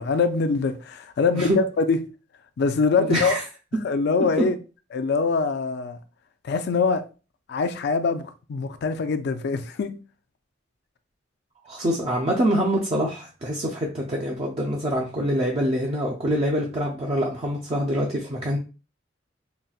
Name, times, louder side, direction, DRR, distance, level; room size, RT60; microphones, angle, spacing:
voice 1, 0.0-2.1 2.6-3.3 3.8-4.6 4.9-6.0 6.4-7.0 7.5-9.9, left 4 dB, 60° left, 0.4 m, -23 dB
voice 2, 1.3-1.6 3.0-3.4 11.6-18.6, equal, 35° right, 0.5 m, -25 dB
3.9 x 2.2 x 2.3 m
head